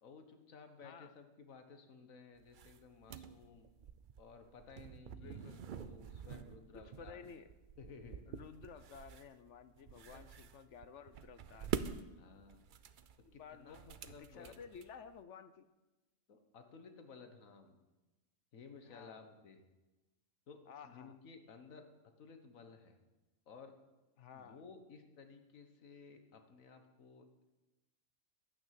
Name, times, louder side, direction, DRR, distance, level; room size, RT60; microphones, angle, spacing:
voice 1, 0.0-3.7 4.2-7.4 7.8-8.2 10.1-10.2 12.1-12.7 13.3-14.5 16.3-17.8 18.5-19.6 20.5-21.8 22.2-23.0 23.5-23.8 24.3-27.2, left 5 dB, 90° left, 7 dB, 1.7 m, -56 dB
voice 2, 0.8-1.1 5.1-5.6 6.7-7.5 8.3-11.8 13.3-15.7 18.8-19.2 20.7-21.2 24.2-24.6, left 6 dB, 65° left, 11 dB, 1.0 m, -54 dB
sound 1, 2.4-15.2, right 7 dB, 55° right, 0.6 m, -47 dB
11.5 x 9.3 x 7.5 m, 1.1 s
omnidirectional pair, 1.4 m